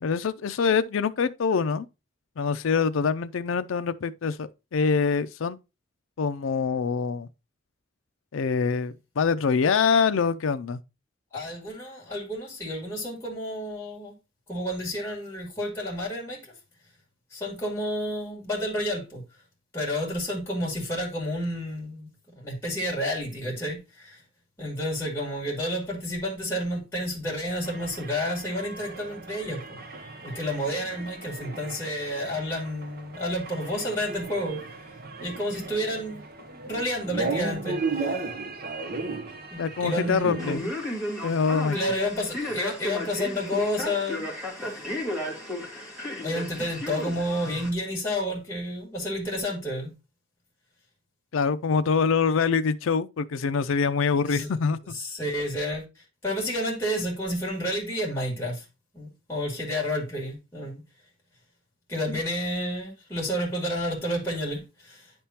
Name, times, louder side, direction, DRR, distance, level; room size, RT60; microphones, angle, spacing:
voice 1, 0.0-1.9 2.4-5.6 6.2-7.3 8.3-10.8 39.6-40.6 41.2-41.8 51.3-54.8, left 5 dB, 80° left, 0.4 m, -25 dB
voice 2, 11.3-14.2 14.5-16.6 17.3-19.2 19.7-22.1 22.3-24.2 24.6-29.8 30.2-34.9 35.2-38.2 39.5-40.7 41.7-44.3 44.6-44.7 46.2-49.9 54.2-54.6 54.9-58.7 58.9-60.8 61.9-65.1, equal, 10° left, 2.0 m, -30 dB
sound 1, 27.6-40.5, right 3 dB, 50° right, 0.7 m, -36 dB
Male speech man speaking, 40.4-47.7, left 1 dB, 5° right, 1.8 m, -34 dB
10.0 x 3.6 x 2.8 m
head